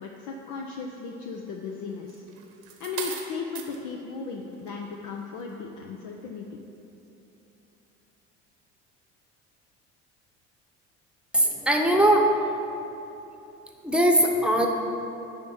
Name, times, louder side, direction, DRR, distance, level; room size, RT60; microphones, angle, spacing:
voice 1, 0.0-2.2 2.8-6.5, left 5 dB, 55° left, 1 dB, 0.8 m, -36 dB
sound 1, 2.1-3.8 4.5-4.8, right 8 dB, 70° right, 1.1 m, -37 dB
voice 2, 11.3-12.6 13.8-14.7, right 1 dB, 5° right, 2 dB, 1.0 m, -20 dB
9.6 x 3.6 x 7.1 m, 2.9 s
hypercardioid pair, 65°, 36 cm